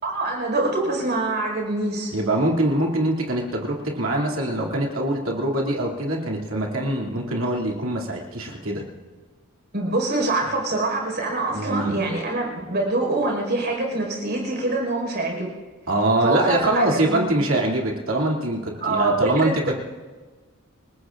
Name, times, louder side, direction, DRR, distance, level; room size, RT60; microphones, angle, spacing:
voice 1, 0.0-2.1 9.7-15.5 16.2-17.3 18.8-19.8, right 2 dB, 50° right, 0 dB, 5.1 m, -25 dB
voice 2, 2.1-8.8 11.5-11.9 15.9-19.5, right 1 dB, 65° right, -1 dB, 2.8 m, -23 dB
28.5 x 20.0 x 2.6 m, 1.3 s
head